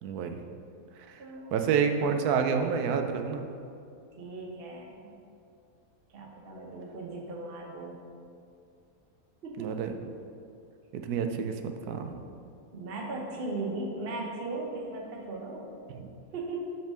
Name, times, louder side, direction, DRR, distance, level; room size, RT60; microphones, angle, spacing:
voice 1, 0.0-0.4 1.1-1.2 1.5-3.4 9.6-9.9 10.9-12.2 15.9-16.1, right 6 dB, 75° right, 6 dB, 1.1 m, -29 dB
voice 2, 1.2-1.6 4.2-5.1 6.1-8.0 9.4-9.7 12.7-15.8 16.3-16.8, right 2 dB, 40° right, -1 dB, 1.0 m, -37 dB
5.4 x 5.3 x 6.1 m, 2.5 s
omnidirectional pair, 1.8 m